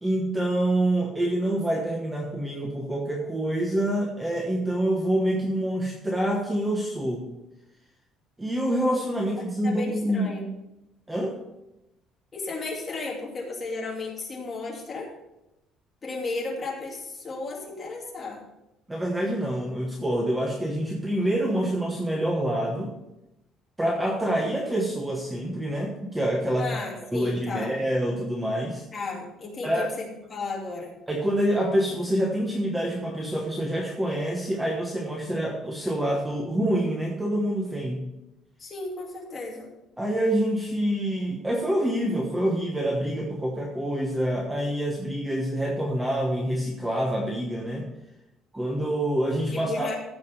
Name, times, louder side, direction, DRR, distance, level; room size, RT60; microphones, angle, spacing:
voice 1, 0.0-7.3 8.4-10.4 11.1-11.4 18.9-22.9 23.8-26.8 27.1-28.8 29.6-29.9 31.1-38.1 40.0-47.9 48.5-49.9, right 1 dB, 5° right, 0 dB, 1.1 m, -26 dB
voice 2, 9.6-10.5 12.3-15.1 16.0-18.4 26.6-27.7 28.9-30.9 38.6-39.7 49.5-49.9, left 3 dB, 20° left, -2 dB, 2.6 m, -34 dB
14.5 x 5.3 x 5.5 m, 0.92 s
cardioid pair, 165°, 0 cm